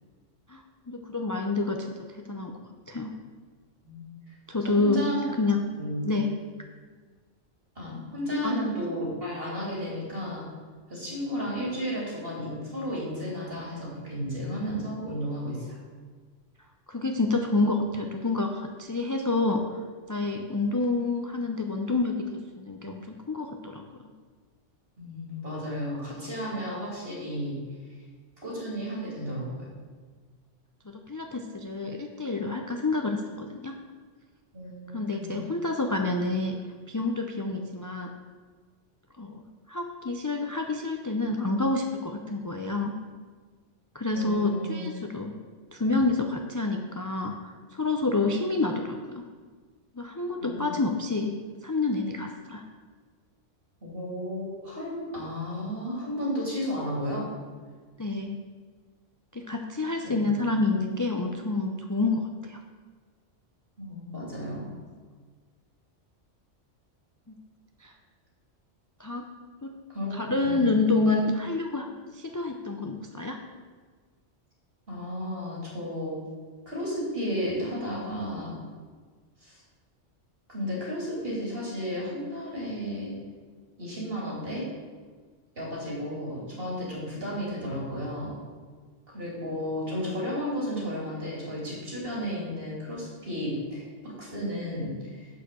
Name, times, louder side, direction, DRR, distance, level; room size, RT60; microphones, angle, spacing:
voice 1, 0.5-1.9 2.3-2.5 2.9-3.1 4.5-5.0 5.4-5.6 6.0-6.3 8.4-8.6 16.9-19.6 20.1-23.8 30.9-33.8 34.9-36.6 36.9-38.1 39.2-42.9 43.9-45.3 45.7-49.2 49.9-51.3 51.6-52.6 58.0-58.4 59.3-62.6 67.3-67.4 67.8-67.9 69.0-69.3 69.6-69.7 70.1-73.4, left 3 dB, 25° left, 3 dB, 0.4 m, -28 dB
voice 2, 4.6-5.2 5.8-6.0 7.7-10.4 10.9-15.8 25.0-27.5 28.4-29.7 34.5-35.4 44.1-45.0 45.8-46.0 50.4-50.8 53.8-57.2 59.5-59.6 60.0-60.3 63.8-64.7 69.9-70.1 70.4-70.7 74.9-76.2 76.6-78.6 79.4-79.6 80.5-83.1 83.8-84.7 85.5-88.3 89.1-95.3, equal, 50° right, -4 dB, 3.3 m, -33 dB
7.7 x 6.6 x 6.8 m, 1.5 s
omnidirectional pair, 1.2 m